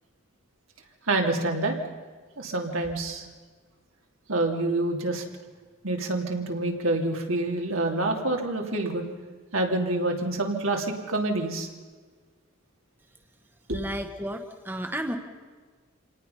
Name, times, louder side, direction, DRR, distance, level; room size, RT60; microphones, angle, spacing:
voice 1, 1.1-1.8 2.4-3.2 4.3-5.2 5.8-9.1 9.5-11.7 13.7-13.8, right 2 dB, 80° right, 2 dB, 2.8 m, -27 dB
voice 2, 13.7-15.2, equal, 10° right, 5 dB, 1.1 m, -32 dB
27.0 x 18.0 x 5.7 m, 1.5 s
head